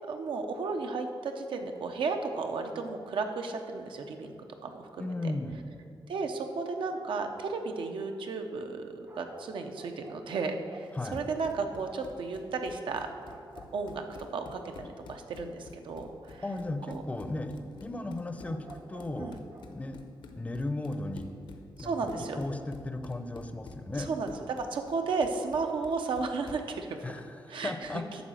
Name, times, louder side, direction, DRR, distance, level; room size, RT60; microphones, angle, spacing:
voice 1, 0.1-4.4 4.6-4.9 6.1-13.1 13.7-14.0 14.3-14.6 15.1-16.4 16.9-17.0 19.2-19.4 21.8-22.4 24.1-27.0 27.5-28.0, right 4 dB, 75° right, 5 dB, 0.8 m, -33 dB
voice 2, 5.0-5.6 10.9-11.2 16.4-19.3 19.7-20.0 20.4-21.3 21.8-24.1 27.0-28.0, left 2 dB, 15° left, 7 dB, 0.6 m, -36 dB
sound 1, 9.0-11.0 13.2-14.5 18.1-19.8 20.0-20.1, right 2 dB, 35° right, 0.8 m, -51 dB
Run, 10.9-26.7, left 4 dB, 75° left, 0.8 m, -50 dB
11.5 x 4.1 x 7.7 m, 2.5 s
wide cardioid pair, 140°, 8 cm